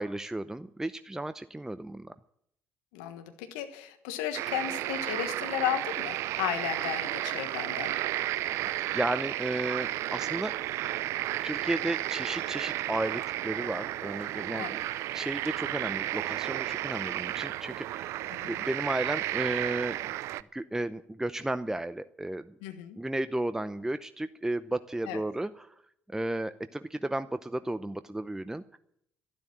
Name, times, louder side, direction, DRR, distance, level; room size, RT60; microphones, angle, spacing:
voice 1, 0.0-2.1 8.6-10.5 11.4-14.8 15.1-18.1 18.4-20.2 20.5-22.5 23.0-25.7 26.1-28.8, right 1 dB, 10° right, 12 dB, 0.7 m, -33 dB
voice 2, 2.9-7.9 14.5-14.7 18.4-18.6 22.6-23.0 25.1-25.2, left 10 dB, 75° left, 8 dB, 1.4 m, -34 dB
sound 1, 4.3-20.4, right 14 dB, 65° right, 0.5 m, -33 dB
12.5 x 12.0 x 8.7 m, 0.73 s
hypercardioid pair, 55°, 5 cm